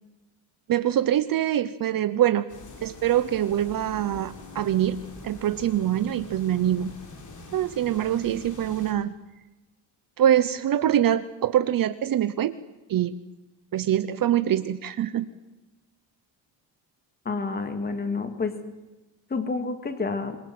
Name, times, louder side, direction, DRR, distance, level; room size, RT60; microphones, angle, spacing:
voice 1, 0.7-2.5 2.8-6.9 7.5-9.1 10.2-12.5 12.9-13.1 13.7-15.3, right 11 dB, 45° right, 13 dB, 0.9 m, -24 dB
sound 1, 2.5-8.9, left 3 dB, 40° left, 4.9 m, -44 dB
voice 2, 17.3-18.6 19.3-20.4, left 4 dB, 20° left, 8 dB, 2.1 m, -29 dB
27.0 x 23.0 x 7.7 m, 1.1 s
cardioid pair, 170°, 47 cm